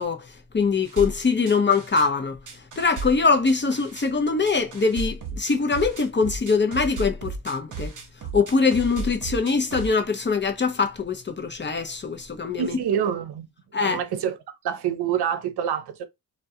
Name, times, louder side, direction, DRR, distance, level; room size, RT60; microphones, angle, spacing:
voice 1, 0.0-2.4 2.8-7.9 8.3-12.8 13.7-14.0, left 4 dB, 30° left, 0.5 m, -23 dB
sound 1, 0.8-2.1 2.5-4.1 4.5-9.9, right 3 dB, 50° right, 0.8 m, -34 dB
voice 2, 12.6-13.5 13.8-14.4 14.6-16.1, right 9 dB, 85° right, 0.6 m, -26 dB
2.2 x 2.1 x 2.7 m
cardioid pair, 70°, 38 cm